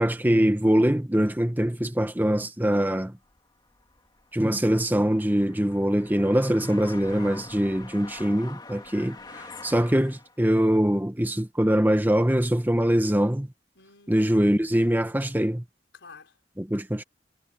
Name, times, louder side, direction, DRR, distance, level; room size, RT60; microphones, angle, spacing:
voice 1, 0.0-3.1 4.3-9.2 9.6-13.5 14.1-15.6 16.6-17.0, equal, 10° right, 0.9 m, -23 dB
sound 1, 3.2-10.4, left 3 dB, 25° left, 2.9 m, -46 dB
voice 2, 8.8-9.7 13.8-14.6 15.9-16.3, left 6 dB, 85° left, 4.3 m, -50 dB
head